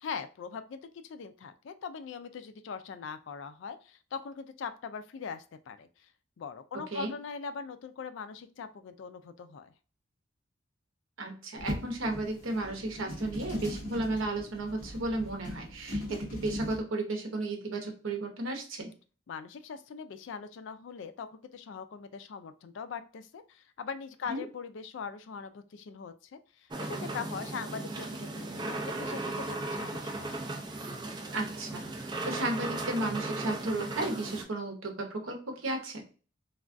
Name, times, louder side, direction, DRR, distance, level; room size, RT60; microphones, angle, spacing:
voice 1, 0.0-6.1 6.4-9.7 19.3-30.4, left 6 dB, 65° left, 11 dB, 0.3 m, -41 dB
voice 2, 11.2-18.9 24.3-24.4 31.3-36.0, right 2 dB, 75° right, 4 dB, 0.8 m, -34 dB
sound 1, 11.5-16.8, equal, 40° left, 1.3 m, -39 dB
sound 2, 26.7-34.4, right 2 dB, 20° right, 0.4 m, -36 dB
3.4 x 2.3 x 2.5 m, 0.37 s
head